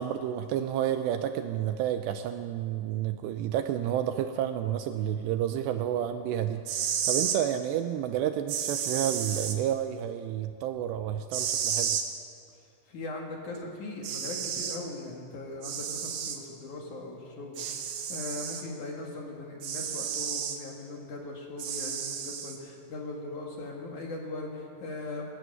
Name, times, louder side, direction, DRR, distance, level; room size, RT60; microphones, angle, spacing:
voice 1, 0.0-12.0, right 10 dB, 80° right, 8 dB, 2.6 m, -30 dB
sound 1, 6.7-7.4 8.5-9.6 11.3-12.1 13.6-13.7 14.0-14.8 15.6-16.4 17.6-18.6 19.6-20.6 21.6-22.6, right 8 dB, 65° right, 2.4 m, -32 dB
voice 2, 12.9-25.3, left 2 dB, 55° left, 0 dB, 2.7 m, -39 dB
20.0 x 14.0 x 9.3 m, 2.5 s
omnidirectional pair, 5.4 m